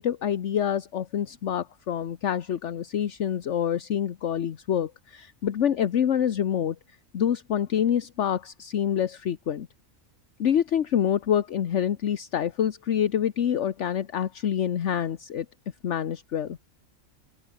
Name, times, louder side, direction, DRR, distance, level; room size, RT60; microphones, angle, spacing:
voice 1, 0.0-6.8 7.1-9.7 10.4-15.5 15.8-16.6, left 9 dB, 65° left, 1.2 m, -26 dB
open air
omnidirectional pair, 1.3 m